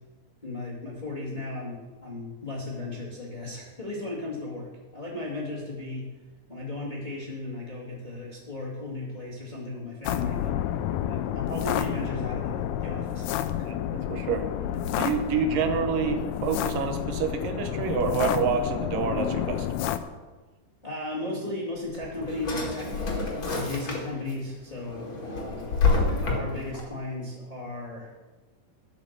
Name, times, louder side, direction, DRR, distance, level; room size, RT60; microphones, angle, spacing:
voice 1, 0.4-6.0 6.5-10.5 11.3-13.3 20.8-25.7 26.1-28.1, left 2 dB, 20° left, -4 dB, 1.6 m, -35 dB
sound 1, 10.0-20.0, left 11 dB, 80° left, 2.0 m, -30 dB
voice 2, 13.7-14.5 14.9-19.7, right 6 dB, 80° right, 6 dB, 2.5 m, -28 dB
Drawer open or close, 21.8-24.3 24.7-26.8, left 3 dB, 45° left, 2.1 m, -28 dB
11.5 x 6.5 x 6.6 m, 1.2 s
omnidirectional pair, 4.0 m